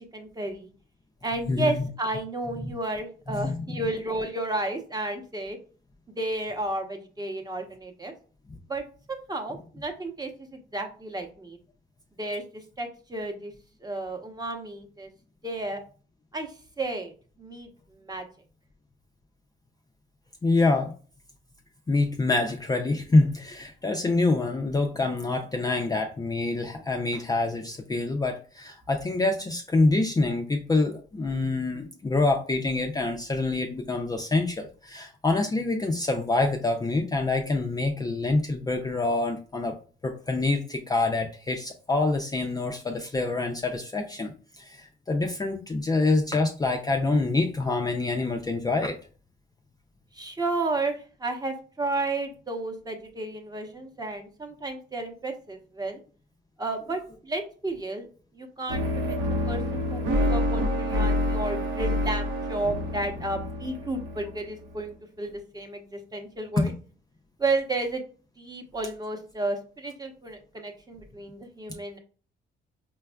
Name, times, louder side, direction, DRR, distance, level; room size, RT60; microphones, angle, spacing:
voice 1, 0.1-0.7 1.2-5.6 6.2-8.1 8.7-8.8 9.1-11.6 12.2-12.4 12.8-13.5 13.8-15.1 15.4-15.8 16.3-16.5 16.8-17.1 17.4-18.2 50.1-56.0 56.6-58.1 58.3-59.2 59.5-66.7 67.4-68.0 68.4-72.0, right 2 dB, 20° right, 4 dB, 0.8 m, -32 dB
voice 2, 1.5-1.8 2.6-2.7 3.3-3.6 20.4-20.9 21.9-39.7 40.0-49.0 66.6-66.7, left 2 dB, 20° left, 2 dB, 0.4 m, -26 dB
sound 1, 58.7-64.8, left 1 dB, 85° right, 0.9 m, -27 dB
5.1 x 2.3 x 2.2 m, 0.39 s
cardioid pair, 90°, 20 cm